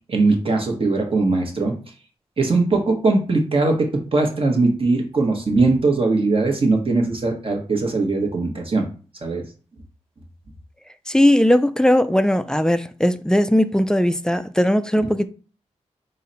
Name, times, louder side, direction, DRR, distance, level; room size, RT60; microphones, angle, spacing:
voice 1, 0.1-1.7 2.4-8.9 9.2-9.4 15.0-15.1, right 3 dB, 45° right, 1.0 m, -20 dB
voice 2, 11.1-15.3, left 1 dB, 5° left, 0.3 m, -18 dB
4.0 x 2.1 x 3.9 m
cardioid pair, 55°, 12 cm